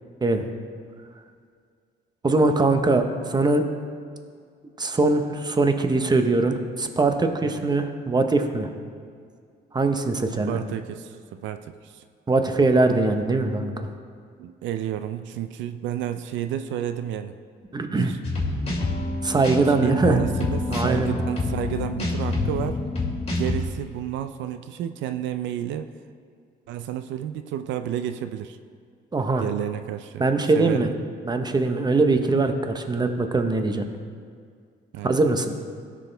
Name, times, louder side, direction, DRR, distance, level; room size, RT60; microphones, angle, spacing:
voice 1, 2.2-3.6 4.8-8.7 9.7-10.6 12.3-13.9 17.7-18.1 19.2-20.2 20.7-21.1 29.1-29.4 30.2-30.9 31.2-33.8 35.0-35.5, right 3 dB, 20° right, 6 dB, 0.9 m, -22 dB
voice 2, 10.3-12.0 14.4-17.4 17.9-18.2 19.7-22.8 23.3-25.9 26.7-28.6 29.4-30.2 30.5-31.0 34.9-35.1, right 10 dB, 85° right, 10 dB, 0.4 m, -31 dB
sound 1, 18.2-23.6, left 2 dB, 35° left, 2.6 m, -27 dB
16.5 x 6.2 x 3.4 m, 2.1 s
cardioid pair, 90°, 19 cm